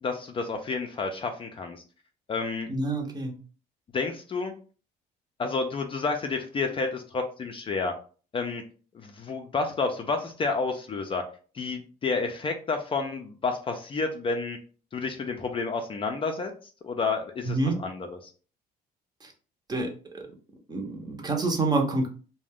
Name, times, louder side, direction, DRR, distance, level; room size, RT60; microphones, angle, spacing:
voice 1, 0.0-1.8 2.3-2.7 3.9-4.5 5.4-7.9 8.3-8.6 8.9-11.2 11.5-14.6 14.9-16.5 16.8-18.3, left 4 dB, 30° left, 4 dB, 0.4 m, -30 dB
voice 2, 2.7-3.4 17.4-17.8 19.2-19.3 19.7-20.2 20.7-22.1, right 2 dB, 25° right, 2 dB, 0.7 m, -27 dB
2.4 x 2.1 x 3.5 m, 0.38 s
cardioid pair, 110°, 17 cm